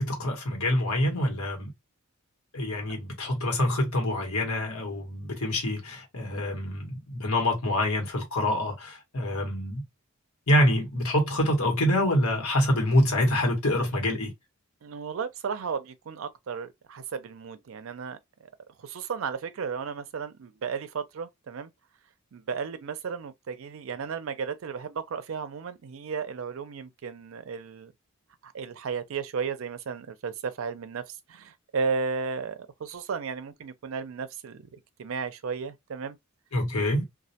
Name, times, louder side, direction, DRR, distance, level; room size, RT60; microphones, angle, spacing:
voice 1, 0.0-1.7 2.5-9.8 10.5-14.3 36.5-37.1, left 1 dB, 85° left, 1.1 m, -26 dB
voice 2, 14.8-18.5 18.8-21.7 22.3-27.9 28.4-36.2, right 5 dB, 65° right, 0.4 m, -34 dB
2.2 x 2.1 x 2.7 m
head